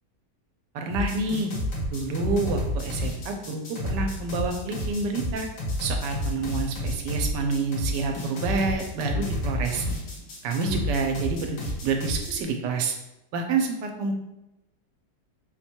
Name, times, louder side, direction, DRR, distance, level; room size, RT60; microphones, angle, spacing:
voice 1, 0.7-1.5 1.9-5.5 5.8-9.9 10.4-11.6 11.8-12.9 13.3-14.1, right 4 dB, 85° right, 4 dB, 1.3 m, -28 dB
sound 1, 0.9-12.3, left 1 dB, 85° left, 1.7 m, -30 dB
4.3 x 2.2 x 4.3 m, 0.94 s
omnidirectional pair, 1.8 m